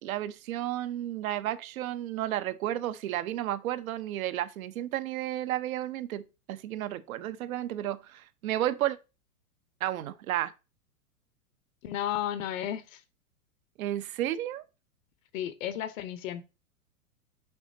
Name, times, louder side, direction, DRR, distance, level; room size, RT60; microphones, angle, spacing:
voice 1, 0.0-6.2 6.5-9.0 9.8-10.5 13.8-14.6, right 13 dB, 65° right, 0.8 m, -32 dB
voice 2, 11.8-13.0 15.3-16.4, left 11 dB, 60° left, 0.9 m, -33 dB
6.8 x 5.0 x 2.7 m
hypercardioid pair, 115°, 46 cm